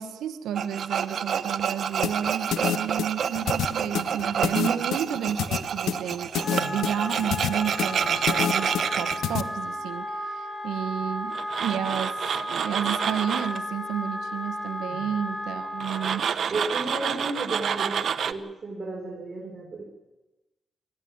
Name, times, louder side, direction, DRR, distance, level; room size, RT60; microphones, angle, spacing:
voice 1, 0.0-12.2 12.5-16.2, right 9 dB, 90° right, 9 dB, 1.4 m, -31 dB
Tools, 0.6-9.2 11.3-13.6 15.8-18.3, right 7 dB, 70° right, 0.9 m, -29 dB
sound 1, 2.0-9.4, left 10 dB, 90° left, 0.9 m, -28 dB
Wind instrument woodwind instrument, 6.3-16.2, left 1 dB, 15° left, 4.6 m, -34 dB
voice 2, 6.4-6.8 14.8-15.1 16.5-18.0 18.3-19.9, right 2 dB, 40° right, -1 dB, 4.9 m, -34 dB
21.0 x 14.0 x 9.6 m, 1.1 s
cardioid pair, 70°, 0 cm